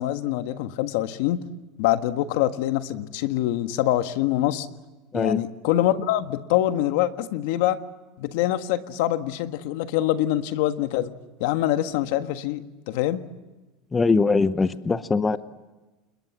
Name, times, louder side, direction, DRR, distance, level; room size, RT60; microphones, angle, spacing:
voice 1, 0.0-1.4 1.8-4.7 5.1-7.8 8.2-11.1 11.4-13.2, left 13 dB, 75° left, 1.5 m, -24 dB
voice 2, 13.9-15.4, left 4 dB, 15° left, 0.9 m, -21 dB
29.0 x 21.0 x 7.4 m
supercardioid pair, 130°, 0 cm